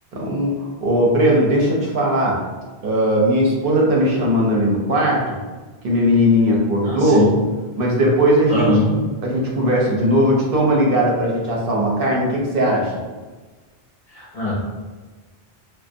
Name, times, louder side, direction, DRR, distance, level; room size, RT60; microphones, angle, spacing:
voice 1, 0.1-2.5 2.8-5.4 5.8-7.3 7.8-8.7 9.2-12.9, equal, 65° right, -3 dB, 0.7 m, -18 dB
voice 2, 6.9-7.3 8.5-8.9 14.1-14.6, left 3 dB, 55° left, -7 dB, 0.4 m, -21 dB
2.4 x 2.0 x 2.6 m, 1.3 s
omnidirectional pair, 1.1 m